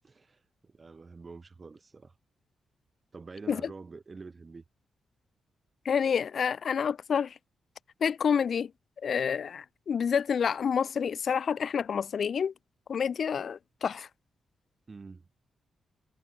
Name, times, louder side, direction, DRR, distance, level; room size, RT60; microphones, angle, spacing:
voice 1, 0.0-2.1 3.1-4.6 14.9-15.3, right 4 dB, 40° right, 2.1 m, -47 dB
voice 2, 5.9-7.3 8.0-8.7 9.0-12.5 12.9-14.1, left 7 dB, 60° left, 0.3 m, -28 dB
supercardioid pair, 55°, 0 cm